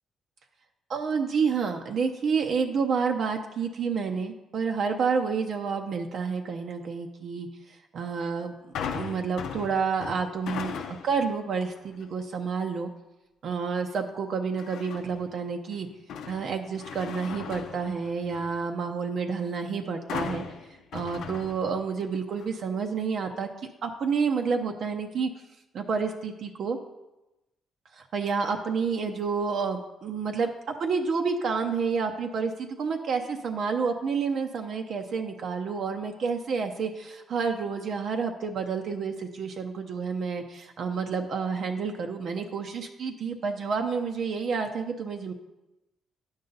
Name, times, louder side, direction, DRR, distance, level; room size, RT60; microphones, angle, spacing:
voice 1, 0.9-8.5 8.9-12.9 13.4-15.9 16.3-20.4 20.9-23.5 23.8-25.3 25.7-26.8 27.9-30.5 30.8-45.3, right 5 dB, 60° right, 4 dB, 0.6 m, -29 dB
sound 1, 8.7-11.3 11.7-12.1 14.6-15.3 15.7-18.6 20.1-22.0 22.4-22.5, left 7 dB, 80° left, 0.6 m, -38 dB
9.7 x 5.5 x 3.9 m, 0.99 s
cardioid pair, 90°, 0 cm